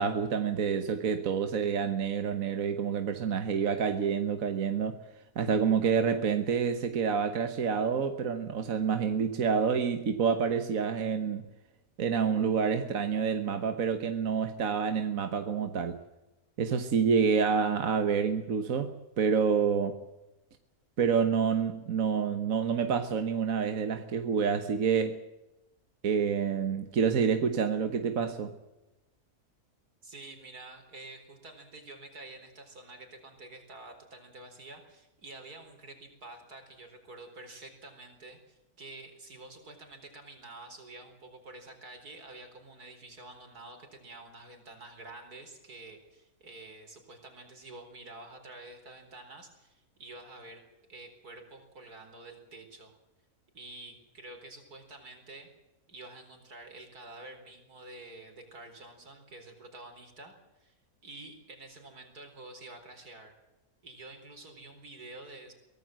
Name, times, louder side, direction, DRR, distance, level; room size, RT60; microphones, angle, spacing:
voice 1, 0.0-5.0 5.3-11.5 12.0-16.0 16.6-20.0 21.0-25.2 26.0-28.5, right 6 dB, 60° right, 7 dB, 1.6 m, -28 dB
voice 2, 30.0-50.6 50.9-53.0 53.5-55.5 55.9-60.7 61.0-63.3 63.8-65.5, right 2 dB, 85° right, 5 dB, 4.7 m, -48 dB
24.0 x 17.0 x 7.6 m, 0.98 s
omnidirectional pair, 1.6 m